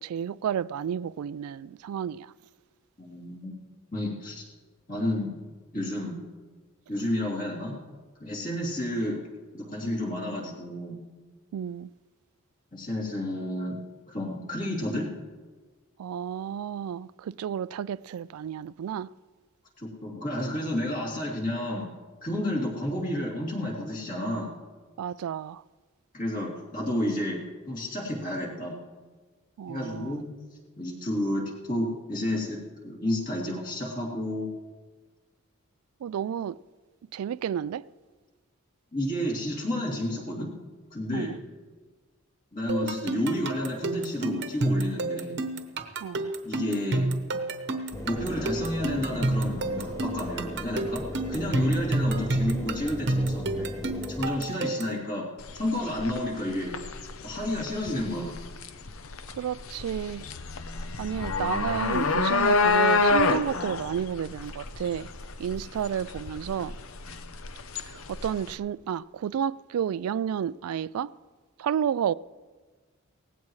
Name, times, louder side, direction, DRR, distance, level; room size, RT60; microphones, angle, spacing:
voice 1, 0.0-2.3 11.5-11.9 16.0-19.1 25.0-25.6 29.6-30.2 36.0-36.6 37.1-37.9 41.1-41.4 46.0-46.3 59.3-60.3 61.0-65.1 65.4-66.8 67.9-71.1 71.6-72.1, right 8 dB, 85° right, 0.3 m, -31 dB
voice 2, 3.0-3.5 3.9-4.4 4.9-5.3 5.7-6.2 6.9-7.8 8.2-9.2 9.5-11.0 12.7-13.8 14.1-15.1 19.8-21.9 22.2-24.5 26.1-28.8 29.7-30.2 30.8-34.5 38.9-40.5 40.9-41.3 42.5-45.4 46.4-47.1 48.0-51.0 51.3-53.7 54.2-55.3 55.5-56.8 57.2-58.3 67.1-67.2, left 1 dB, 40° left, 3.1 m, -31 dB
sound 1, 42.7-55.0, right 2 dB, 50° right, 1.0 m, -29 dB
Engine, 47.9-54.3, equal, 15° left, 1.2 m, -37 dB
sound 2, 55.4-68.5, left 4 dB, 75° left, 0.7 m, -28 dB
18.0 x 15.5 x 3.2 m
head